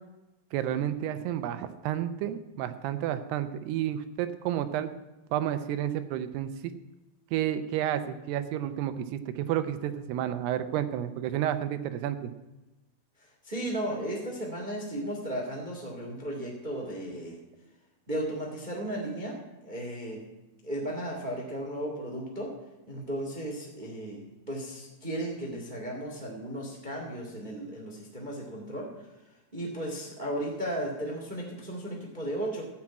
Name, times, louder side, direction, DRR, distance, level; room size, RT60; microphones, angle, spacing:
voice 1, 0.5-4.9 5.3-6.7 7.3-12.3, right 11 dB, 80° right, 11 dB, 2.6 m, -31 dB
voice 2, 13.4-17.4 18.1-20.2 20.6-22.5 22.9-28.9 29.5-32.6, right 1 dB, 30° right, -1 dB, 0.8 m, -35 dB
14.5 x 5.9 x 8.7 m, 1.0 s
omnidirectional pair, 4.9 m